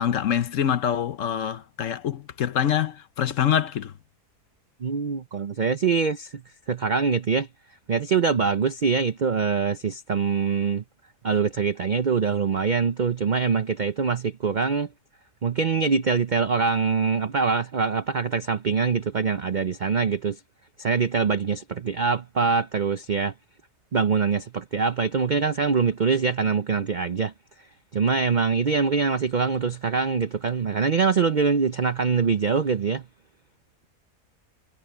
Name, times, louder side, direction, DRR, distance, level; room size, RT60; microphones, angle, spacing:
voice 1, 0.0-3.9, left 9 dB, 60° left, 1.0 m, -25 dB
voice 2, 4.8-6.4 6.7-7.5 7.9-10.8 11.2-14.9 15.4-20.4 20.8-23.3 23.9-27.3 27.9-33.0, right 5 dB, 80° right, 0.4 m, -24 dB
omnidirectional pair, 1.7 m